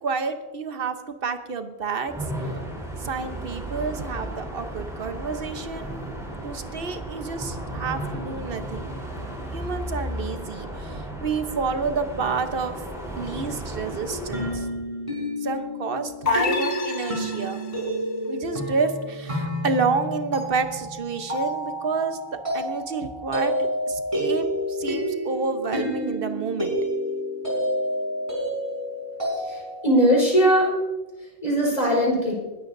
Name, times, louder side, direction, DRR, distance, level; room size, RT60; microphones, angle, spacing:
voice 1, 0.0-1.0 1.2-2.1 3.0-6.0 6.4-9.0 9.5-12.7 13.2-14.7 15.4-17.6 18.3-22.2 22.5-26.8, right 4 dB, 65° right, 8 dB, 1.2 m, -29 dB
sound 1, 2.1-14.6, right 1 dB, 5° right, 3.8 m, -34 dB
sound 2, 14.1-29.9, equal, 30° right, 5.3 m, -29 dB
sound 3, 16.3-17.9, left 6 dB, 65° left, 1.5 m, -28 dB
voice 2, 29.4-30.7 31.4-32.3, equal, 40° left, -3 dB, 4.7 m, -20 dB
21.0 x 12.5 x 2.7 m, 1.2 s
omnidirectional pair, 1.1 m